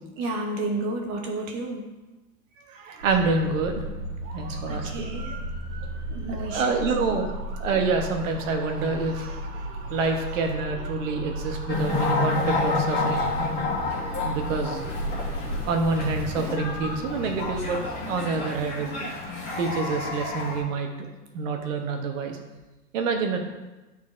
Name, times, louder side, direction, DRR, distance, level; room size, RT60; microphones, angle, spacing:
voice 1, 0.2-1.9 4.7-5.3 6.1-6.9, right 2 dB, 25° right, 2 dB, 0.7 m, -31 dB
voice 2, 2.7-3.8 4.3-5.1 6.3-7.3 7.6-13.3 14.2-14.8 15.6-17.8 18.0-21.1 21.3-22.4 22.9-23.4, right 4 dB, 50° right, 4 dB, 1.0 m, -27 dB
sound 1, 3.0-17.7, right 1 dB, 70° right, 1.9 m, -35 dB
sound 2, 11.7-20.6, left 3 dB, 35° left, 1.7 m, -29 dB
9.2 x 4.1 x 2.5 m, 1.1 s
hypercardioid pair, 145°, 48 cm